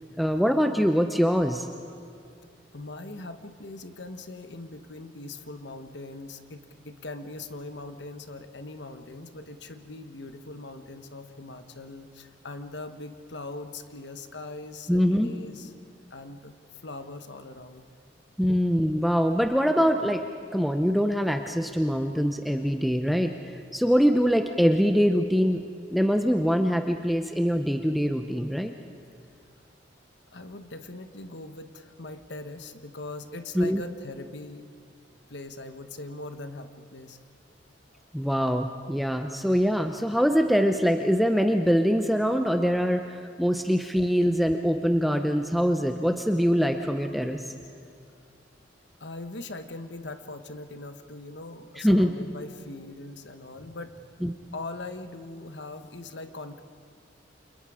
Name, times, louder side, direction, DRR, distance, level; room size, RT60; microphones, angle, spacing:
voice 1, 0.2-1.7 14.9-15.3 18.4-20.2 20.5-23.3 23.7-25.6 25.9-28.7 33.5-33.8 38.1-47.4 51.8-52.1 54.2-54.3, equal, ahead, 5 dB, 0.7 m, -23 dB
voice 2, 2.7-15.7 16.1-16.5 16.8-17.8 18.5-18.6 30.3-34.6 35.3-37.2 49.0-54.1 54.5-56.6, left 2 dB, 65° left, 8 dB, 1.3 m, -41 dB
29.5 x 27.5 x 5.0 m, 2.3 s
head